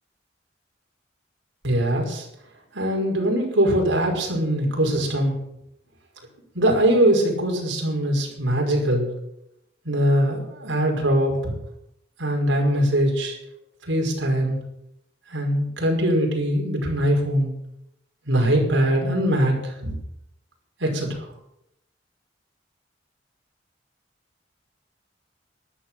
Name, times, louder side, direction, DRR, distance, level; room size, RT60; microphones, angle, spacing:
voice 1, 1.6-2.3 2.7-5.3 6.5-9.1 9.9-11.5 12.2-13.4 13.9-14.6 15.3-17.5 18.3-20.0 20.8-21.3, right 1 dB, 85° right, 0 dB, 5.4 m, -22 dB
13.5 x 11.5 x 7.7 m, 0.81 s
head